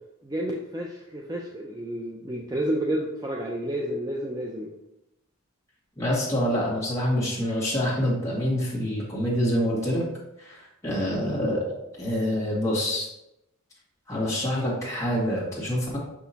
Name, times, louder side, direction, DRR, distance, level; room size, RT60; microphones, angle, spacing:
voice 1, 0.2-4.7, right 1 dB, 15° right, -1 dB, 0.5 m, -30 dB
voice 2, 6.0-10.0 10.4-13.1 14.1-16.0, equal, 15° left, -7 dB, 2.0 m, -26 dB
6.0 x 6.0 x 2.8 m, 0.88 s
head